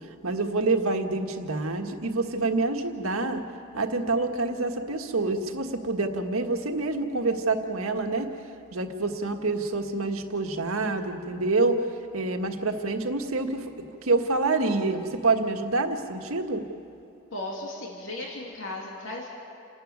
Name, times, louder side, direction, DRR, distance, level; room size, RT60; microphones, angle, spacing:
voice 1, 0.2-3.4 3.7-8.3 8.7-11.8 12.1-13.7 14.0-16.6, right 3 dB, 85° right, 5 dB, 1.6 m, -27 dB
voice 2, 17.3-19.3, left 2 dB, 65° left, -2 dB, 2.8 m, -36 dB
28.5 x 12.5 x 9.6 m, 2.6 s
head